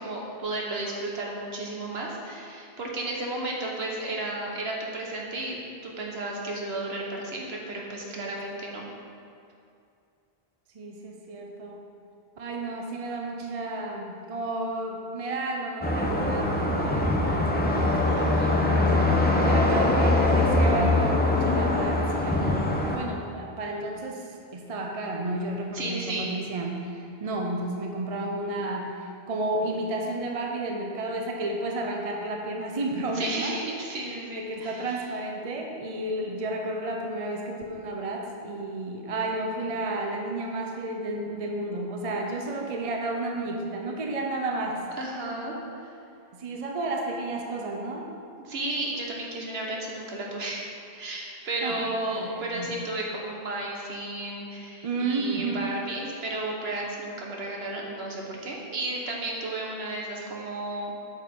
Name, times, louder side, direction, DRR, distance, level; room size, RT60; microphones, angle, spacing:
voice 1, 0.0-8.9 18.0-18.9 25.7-26.3 33.1-34.9 45.0-45.6 45.8-45.9 48.4-61.0, right 2 dB, 70° right, -1 dB, 1.4 m, -33 dB
voice 2, 10.7-11.8 12.4-33.6 33.9-34.0 34.3-44.9 46.3-48.1 51.6-52.7 54.8-55.7, right 2 dB, 40° right, 1 dB, 0.6 m, -32 dB
sound 1, 15.8-23.0, left 2 dB, 10° left, 0.6 m, -23 dB
8.6 x 6.5 x 3.6 m, 2.5 s
omnidirectional pair, 1.1 m